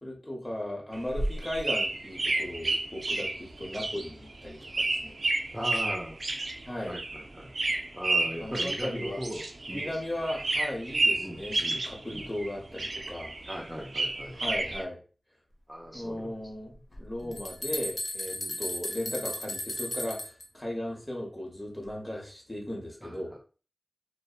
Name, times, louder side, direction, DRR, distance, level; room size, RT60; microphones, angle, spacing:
voice 1, 0.0-5.2 5.5-5.6 6.7-7.0 8.4-9.2 9.7-13.3 14.3-15.0 15.9-23.3, left 1 dB, 25° left, -2 dB, 1.0 m, -36 dB
sound 1, 0.9-10.0 10.2-12.5 12.8-14.8, right 2 dB, 75° right, 0.4 m, -31 dB
voice 2, 5.5-6.2 6.9-7.5 7.9-9.9 11.2-11.8 12.1-12.2 13.5-14.4 15.7-16.3 17.2-17.4 18.3-18.6 23.0-23.4, equal, 5° right, -3 dB, 0.5 m, -39 dB
sound 2, 16.9-17.0 17.3-20.5, left 1 dB, 55° left, 0.6 m, -35 dB
2.6 x 2.1 x 2.4 m, 0.36 s
wide cardioid pair, 55°, 0 cm